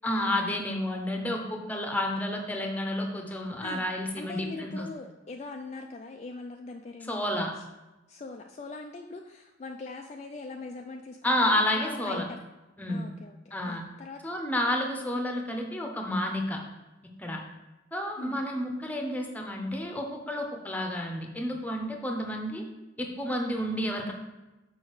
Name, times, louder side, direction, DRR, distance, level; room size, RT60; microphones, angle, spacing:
voice 1, 0.0-4.9 7.1-7.5 11.2-12.2 12.8-13.1 13.5-13.8 14.2-16.6 17.2-17.4 17.9-22.6 23.0-24.1, left 1 dB, 10° left, 2 dB, 0.8 m, -30 dB
voice 2, 3.6-7.6 8.1-12.4 12.9-14.3 18.2-18.4, left 3 dB, 35° left, 3 dB, 0.3 m, -42 dB
6.3 x 4.8 x 4.7 m, 1.1 s
head